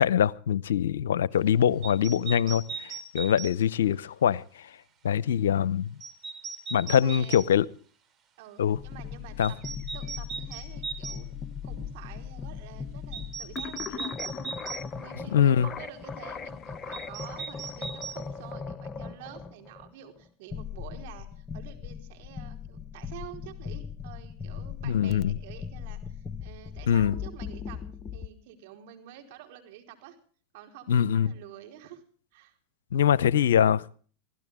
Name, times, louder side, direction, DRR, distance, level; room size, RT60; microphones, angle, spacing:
voice 1, 0.0-4.4 5.0-5.9 6.7-7.7 8.6-8.8 9.4-9.5 15.3-15.7 24.8-25.3 26.9-27.1 30.9-31.3 32.9-34.0, left 9 dB, 80° left, 22 dB, 0.7 m, -23 dB
sound 1, 1.8-3.5 6.0-7.5 9.4-11.2 13.1-14.8 16.9-18.2, right 5 dB, 35° right, 3.5 m, -38 dB
voice 2, 6.9-7.5 8.4-9.6 9.9-11.3 11.6-27.8 28.1-30.2 30.5-32.0 32.3-32.6, right 11 dB, 65° right, 5 dB, 4.4 m, -48 dB
sound 2, 8.7-28.3, left 6 dB, 30° left, 1.0 m, -39 dB
24.5 x 16.0 x 3.6 m, 0.43 s
hypercardioid pair, 100°, 0 cm